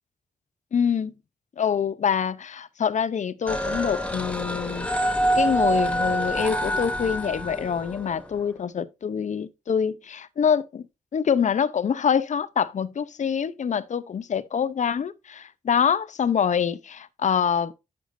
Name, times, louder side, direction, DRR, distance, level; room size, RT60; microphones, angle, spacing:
voice 1, 0.7-1.1 1.6-4.9 5.4-10.8 11.1-17.7, left 7 dB, 55° left, 0.7 m, -25 dB
sound 1, 3.5-8.3, right 1 dB, 10° left, 1.8 m, -26 dB
10.0 x 7.0 x 2.6 m
cardioid pair, 90°, 15 cm